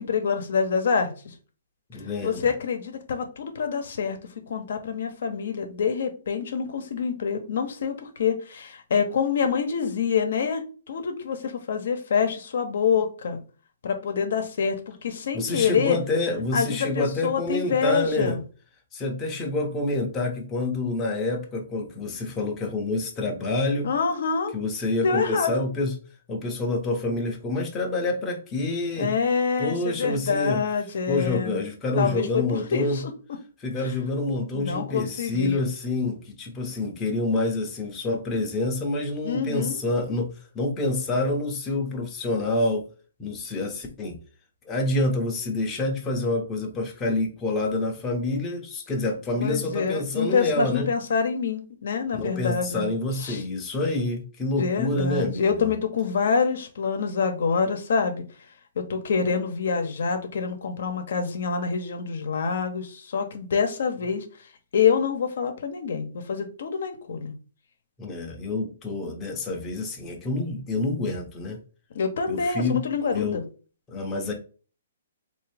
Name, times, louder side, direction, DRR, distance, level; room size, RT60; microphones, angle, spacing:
voice 1, 0.0-1.3 2.2-4.2 4.5-10.6 10.9-13.4 13.8-16.0 16.5-18.4 23.8-24.5 25.0-25.5 29.0-31.6 32.0-33.1 34.5-35.7 39.2-39.8 49.4-52.9 53.2-53.4 54.6-58.3 58.8-64.2 64.7-67.3 71.9-73.4, left 6 dB, 65° left, 0.8 m, -26 dB
voice 2, 1.9-2.5 15.3-18.4 18.9-23.9 24.5-25.9 26.3-29.1 29.6-30.6 31.1-33.0 33.6-40.3 40.5-42.9 43.2-44.2 44.7-50.9 52.1-55.6 68.0-71.6 72.3-73.4 73.9-74.3, left 2 dB, 15° left, 0.8 m, -27 dB
3.6 x 2.7 x 3.4 m
hypercardioid pair, 160°, 0 cm